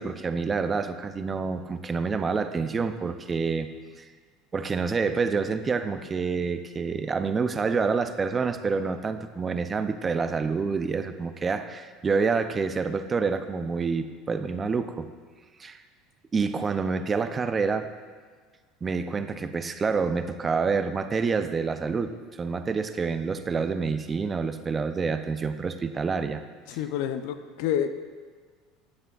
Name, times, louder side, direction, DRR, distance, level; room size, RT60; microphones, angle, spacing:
voice 1, 0.0-3.7 4.5-15.1 15.6-15.8 16.3-17.9 18.8-26.4, right 5 dB, 20° right, 10 dB, 0.3 m, -27 dB
voice 2, 26.7-27.9, left 9 dB, 70° left, 10 dB, 0.4 m, -28 dB
9.5 x 6.0 x 2.3 m, 1.5 s
supercardioid pair, 130°, 0 cm